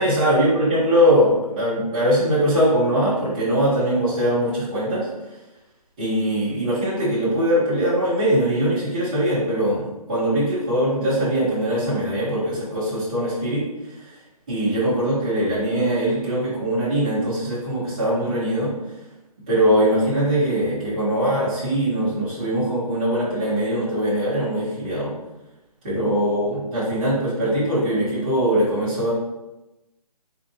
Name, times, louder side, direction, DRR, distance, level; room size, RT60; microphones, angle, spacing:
voice 1, 0.0-5.4 6.0-14.2 14.5-18.7 19.5-25.1 25.8-29.1, right 1 dB, 10° right, -12 dB, 0.6 m, -21 dB
3.4 x 2.6 x 2.6 m, 1.0 s
hypercardioid pair, 170°, 20 cm